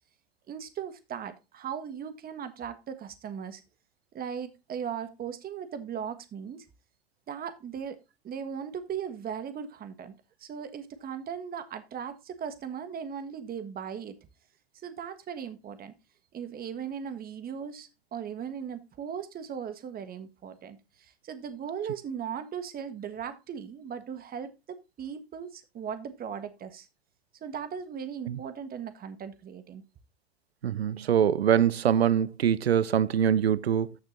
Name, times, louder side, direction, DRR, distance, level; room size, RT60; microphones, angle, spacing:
voice 1, 0.5-3.6 4.1-6.7 7.3-8.0 8.2-10.1 10.4-14.2 14.8-15.9 16.3-26.9 27.4-29.8, right 7 dB, 30° right, 1.5 m, -38 dB
voice 2, 30.6-33.9, right 9 dB, 85° right, 0.7 m, -24 dB
14.5 x 6.1 x 2.6 m
hypercardioid pair, 85°, 30 cm